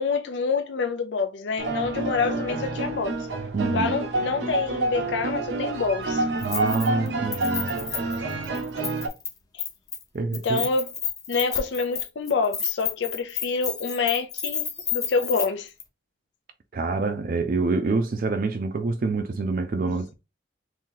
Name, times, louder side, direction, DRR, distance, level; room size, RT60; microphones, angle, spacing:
voice 1, 0.0-3.2 3.7-6.2 9.5-9.6 10.4-10.9 11.3-15.7 19.9-20.0, left 4 dB, 80° left, 0.4 m, -27 dB
sound 1, 1.6-9.1, right 2 dB, 80° right, 0.7 m, -28 dB
voice 2, 3.5-3.9 6.4-7.7 10.1-10.7 16.7-20.1, right 3 dB, 50° right, 0.4 m, -26 dB
Keys jangling, 6.4-7.1 7.3-9.3 9.6-10.0 10.3-15.5 15.8-15.9, left 7 dB, 20° left, 0.6 m, -31 dB
2.8 x 2.7 x 3.8 m
head